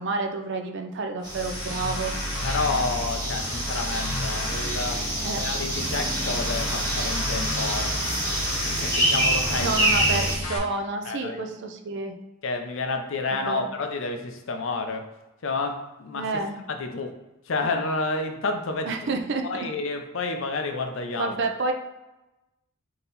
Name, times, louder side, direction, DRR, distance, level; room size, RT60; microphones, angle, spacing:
voice 1, 0.0-2.1 5.2-5.4 9.6-12.1 13.3-13.6 16.1-16.6 18.9-19.7 21.2-21.7, right 3 dB, 55° right, 5 dB, 0.5 m, -29 dB
sound 1, 1.2-10.6, left 1 dB, 90° left, 1.0 m, -32 dB
sound 2, 1.2-10.4, right 1 dB, 20° right, 1.2 m, -27 dB
voice 2, 2.4-5.0 5.3-8.0 8.6-10.1 11.0-11.4 12.4-15.1 15.4-16.3 16.7-17.1 17.5-18.9 19.4-21.3, left 3 dB, 60° left, 5 dB, 0.5 m, -30 dB
3.7 x 2.9 x 3.9 m, 1.0 s
head